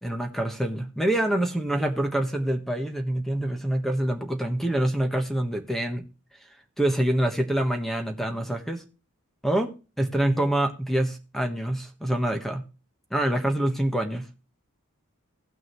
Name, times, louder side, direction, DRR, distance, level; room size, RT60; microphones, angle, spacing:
voice 1, 0.0-6.0 6.8-8.8 9.4-9.7 10.0-12.6 13.1-14.2, right 1 dB, ahead, 5 dB, 1.2 m, -26 dB
18.0 x 6.0 x 3.1 m, 0.32 s
head